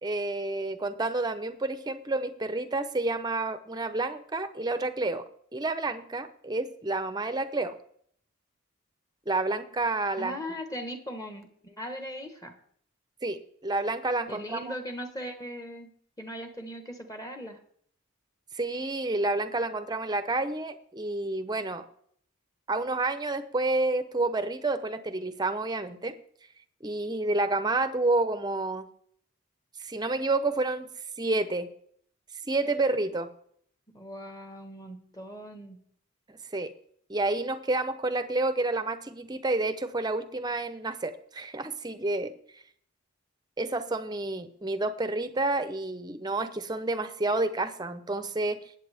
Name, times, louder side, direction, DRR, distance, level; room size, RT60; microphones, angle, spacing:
voice 1, 0.0-5.2 5.5-7.8 9.3-10.4 13.2-14.6 18.5-21.8 22.7-26.1 26.8-28.9 29.8-30.9 31.2-31.7 32.5-33.3 36.3-36.7 37.1-42.6 43.6-48.6, right 2 dB, 20° right, 11 dB, 0.7 m, -29 dB
voice 2, 10.2-12.5 14.3-17.6 32.7-32.9 33.9-35.8, equal, 15° left, 6 dB, 1.3 m, -39 dB
20.0 x 8.2 x 3.5 m, 0.62 s
head